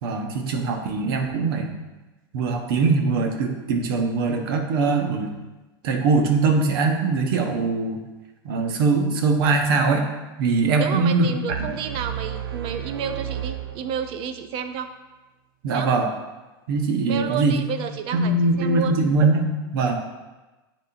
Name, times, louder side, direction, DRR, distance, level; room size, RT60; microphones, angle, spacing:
voice 1, 0.0-1.7 2.3-5.3 5.8-8.0 8.4-10.1 10.4-11.7 15.6-16.1 16.7-17.5 18.1-19.5 19.7-19.9, right 3 dB, 70° right, 3 dB, 1.1 m, -22 dB
voice 2, 10.8-14.9 15.7-15.9 17.0-18.9, right 7 dB, 45° right, 8 dB, 0.6 m, -30 dB
sound 1, 11.5-14.4, right 9 dB, 90° right, 0.6 m, -33 dB
9.5 x 3.7 x 2.7 m, 1.1 s
hypercardioid pair, 110°, 12 cm